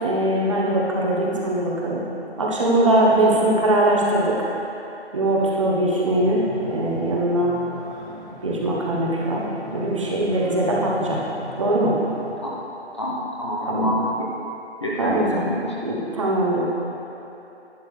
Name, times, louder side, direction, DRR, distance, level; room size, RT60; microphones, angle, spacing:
voice 1, 0.0-2.0 2.4-4.5 5.1-7.6 8.4-9.4 9.7-11.2 11.6-12.0 13.6-13.9 15.0-15.5 15.8-16.6, right 1 dB, 30° right, -4 dB, 1.0 m, -21 dB
sound 1, 6.1-12.3, equal, 10° right, 1.8 m, -39 dB
voice 2, 12.9-14.3 14.8-15.6, equal, 25° left, -5 dB, 0.8 m, -26 dB
11.5 x 8.7 x 3.3 m, 3.0 s
figure-of-eight pair, 165°, 34 cm